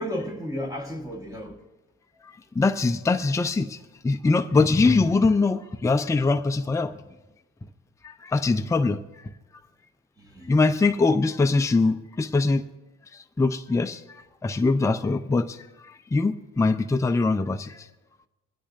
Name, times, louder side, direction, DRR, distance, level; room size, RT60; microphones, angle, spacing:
voice 1, 0.0-1.6 2.1-2.3 10.2-10.5, equal, 10° right, 1.3 m, -33 dB
voice 2, 2.2-6.9 8.0-9.2 10.5-12.6 13.1-15.6 15.8-17.9, left 3 dB, 10° left, 0.5 m, -23 dB
21.0 x 9.8 x 2.6 m
cardioid pair, 90°, 30 cm